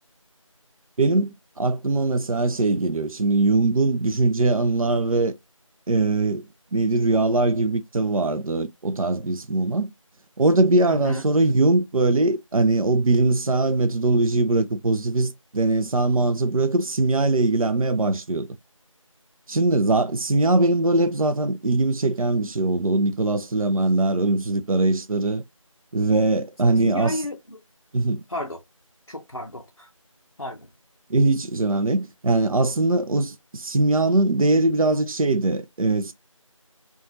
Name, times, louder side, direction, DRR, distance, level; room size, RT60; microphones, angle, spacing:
voice 1, 1.0-1.3 1.6-5.4 5.9-6.4 6.7-9.9 10.4-18.5 19.5-25.4 25.9-27.1 27.9-28.2 31.1-36.1, right 2 dB, 85° right, 0.4 m, -21 dB
voice 2, 10.9-11.3 26.7-27.6 28.3-28.6 29.1-29.9 30.4-30.7, left 1 dB, 55° left, 0.5 m, -32 dB
2.5 x 2.3 x 3.0 m
figure-of-eight pair, 180°, 18 cm